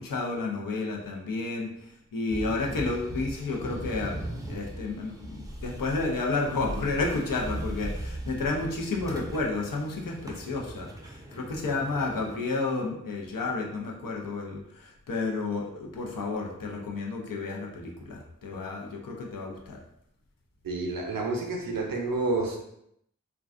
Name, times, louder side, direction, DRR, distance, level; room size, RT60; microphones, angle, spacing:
voice 1, 0.0-19.8, left 3 dB, 85° left, 0 dB, 0.5 m, -31 dB
sound 1, 2.3-12.4, right 1 dB, 10° right, 0.4 m, -39 dB
voice 2, 20.6-22.6, right 3 dB, 85° right, 2 dB, 0.5 m, -29 dB
2.4 x 2.2 x 2.4 m, 0.77 s
wide cardioid pair, 55°, 33 cm